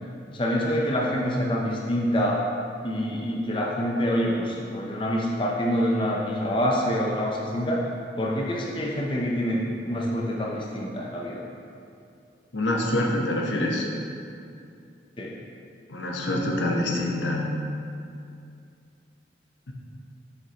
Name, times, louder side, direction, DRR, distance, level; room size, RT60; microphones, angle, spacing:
voice 1, 0.3-2.4 2.8-7.8 8.2-11.4 15.2-15.3, equal, 25° left, -3 dB, 0.7 m, -26 dB
voice 2, 12.5-13.9 15.9-17.5, left 1 dB, 85° left, -1 dB, 0.9 m, -25 dB
7.6 x 6.3 x 2.9 m, 2.5 s
head